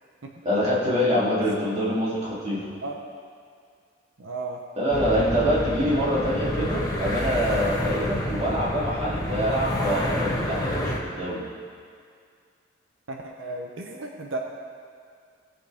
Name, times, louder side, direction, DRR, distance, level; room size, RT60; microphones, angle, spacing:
voice 1, 0.4-2.6 4.8-11.4, equal, 30° right, -8 dB, 3.1 m, -25 dB
voice 2, 4.2-4.6 13.1-14.4, right 2 dB, 85° right, 1 dB, 0.9 m, -34 dB
sound 1, 4.9-11.0, left 1 dB, 20° left, 1.4 m, -29 dB
19.0 x 7.8 x 3.6 m, 2.2 s
head